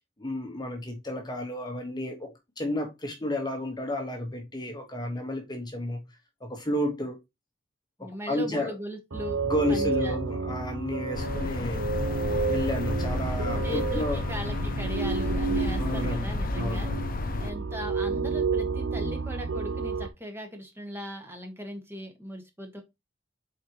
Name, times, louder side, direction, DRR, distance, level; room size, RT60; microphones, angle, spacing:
voice 1, 0.2-6.0 6.4-7.2 8.0-8.7 9.5-11.9 12.5-14.2 15.8-17.0, left 1 dB, 20° left, 1.2 m, -32 dB
voice 2, 8.0-9.4 9.7-10.2 13.6-16.9 17.4-22.8, equal, 15° right, 1.6 m, -38 dB
sound 1, 9.1-20.1, right 4 dB, 90° right, 0.8 m, -30 dB
sound 2, 11.1-17.5, left 3 dB, 50° left, 0.5 m, -33 dB
8.0 x 4.3 x 3.0 m
head